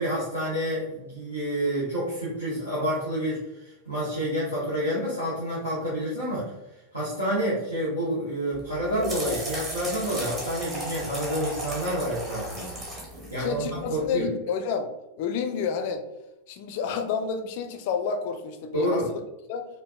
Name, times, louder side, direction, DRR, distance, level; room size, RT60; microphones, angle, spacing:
voice 1, 0.0-6.5 6.9-12.8 13.3-14.3 18.7-19.1, equal, 80° right, -10 dB, 1.1 m, -28 dB
sound 1, 8.5-14.1, equal, 20° right, 1.1 m, -35 dB
voice 2, 13.3-14.9 15.2-16.1 16.5-19.2 19.5-19.7, left 6 dB, 50° left, 7 dB, 0.4 m, -30 dB
4.5 x 2.4 x 2.4 m, 0.94 s
figure-of-eight pair, 90°, 0 cm